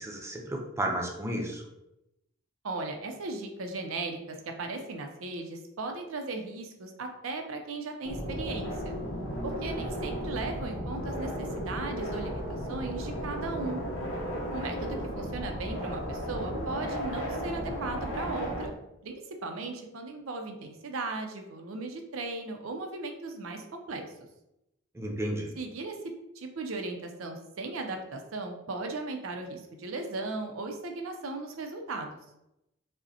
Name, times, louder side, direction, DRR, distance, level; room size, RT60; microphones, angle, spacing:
voice 1, 0.0-1.6 24.9-25.5, right 1 dB, 15° right, 1 dB, 0.5 m, -32 dB
voice 2, 2.6-8.9 9.4-13.8 14.5-18.7 19.0-24.0 25.6-26.0 26.4-32.2, right 3 dB, 90° right, 4 dB, 0.5 m, -37 dB
sound 1, 8.0-18.7, equal, 70° left, 0.8 m, -34 dB
5.0 x 2.1 x 2.7 m, 0.88 s
head